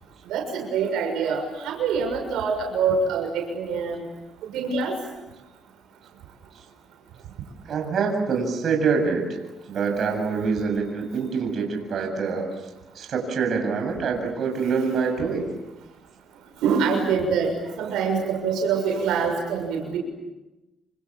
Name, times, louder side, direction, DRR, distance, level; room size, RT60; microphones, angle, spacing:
voice 1, 0.3-4.0 4.4-5.0 16.6-20.0, right 5 dB, 90° right, 2 dB, 6.7 m, -25 dB
voice 2, 7.7-9.3 9.7-12.5 12.9-15.5, right 5 dB, 60° right, 4 dB, 7.5 m, -25 dB
28.5 x 27.5 x 7.4 m, 1.0 s
cardioid pair, 90°, 0 cm